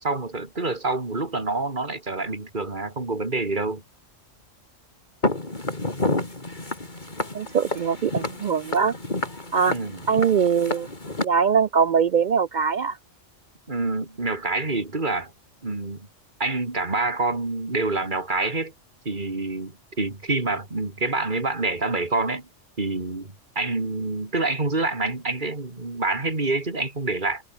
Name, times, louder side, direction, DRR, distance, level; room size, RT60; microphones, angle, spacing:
voice 1, 0.0-3.8 9.7-10.0 13.7-15.3 15.6-16.1 16.4-18.7 19.0-22.5 22.8-27.4, right 3 dB, 40° right, 3.4 m, -27 dB
Walk footsteps, 5.2-11.3, left 2 dB, 35° left, 3.6 m, -29 dB
voice 2, 7.3-8.9 9.5-9.7 10.1-10.9 11.2-13.0, right 6 dB, 65° right, 0.4 m, -22 dB
omnidirectional pair, 1.3 m